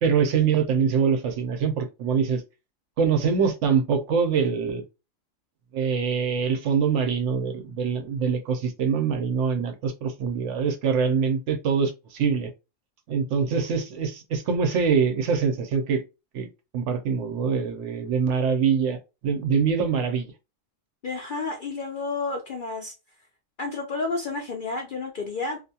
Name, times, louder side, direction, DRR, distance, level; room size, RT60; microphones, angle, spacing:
voice 1, 0.0-2.4 3.0-4.8 5.7-12.5 13.1-16.0 16.3-16.5 16.7-19.0 19.2-20.3, right 6 dB, 70° right, 0.8 m, -24 dB
voice 2, 21.0-22.9 23.6-25.6, left 3 dB, 60° left, 0.5 m, -31 dB
2.4 x 2.2 x 2.7 m
omnidirectional pair, 1.4 m